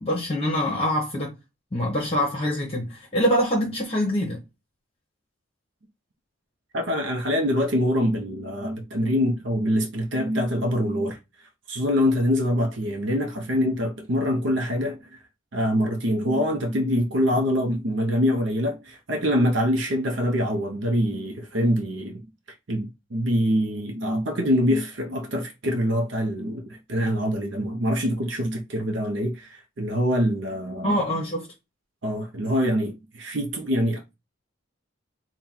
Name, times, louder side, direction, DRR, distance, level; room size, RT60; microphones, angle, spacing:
voice 1, 0.0-1.3 1.7-4.4 30.8-31.5, equal, 30° left, 0.9 m, -24 dB
voice 2, 6.7-11.2 11.7-15.2 15.5-22.2 22.7-30.9 32.0-34.1, equal, 60° right, 0.7 m, -24 dB
4.3 x 2.2 x 3.8 m
head